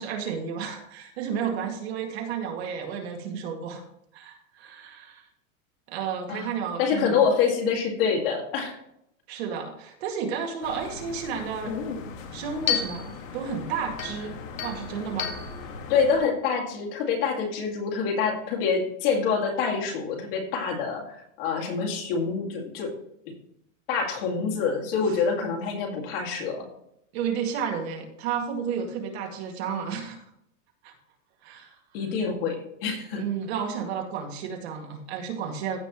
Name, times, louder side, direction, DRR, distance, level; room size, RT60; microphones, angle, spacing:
voice 1, 0.0-3.8 4.1-5.2 5.9-7.2 9.3-11.7 12.3-15.3 25.1-25.2 27.1-30.2 30.8-30.9 31.4-31.8 33.1-35.8, right 7 dB, 50° right, 2 dB, 2.2 m, -32 dB
voice 2, 6.8-8.8 15.9-22.9 23.9-26.6 31.9-32.6 32.8-33.2, left 5 dB, 45° left, 1 dB, 2.2 m, -26 dB
sound 1, 10.6-16.2, left 7 dB, 70° left, 1.9 m, -34 dB
15.0 x 5.6 x 3.0 m, 0.74 s
supercardioid pair, 175°, 40 cm